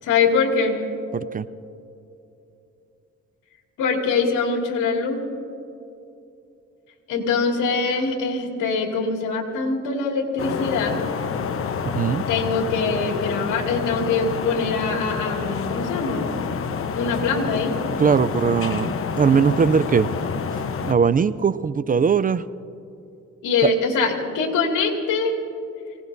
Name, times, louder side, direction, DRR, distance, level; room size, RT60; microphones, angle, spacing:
voice 1, 0.0-0.8 3.8-5.2 7.1-11.0 12.3-16.3 16.9-17.8 23.4-25.3, left 4 dB, 90° left, 0 dB, 2.5 m, -23 dB
voice 2, 1.1-1.5 11.9-12.2 18.0-20.1 20.8-22.5 23.6-23.7, right 6 dB, 30° right, 16 dB, 0.4 m, -20 dB
sound 1, 10.4-20.9, left 6 dB, 45° left, 1.0 m, -28 dB
24.5 x 18.0 x 2.7 m, 2.7 s
cardioid pair, 90°, 30 cm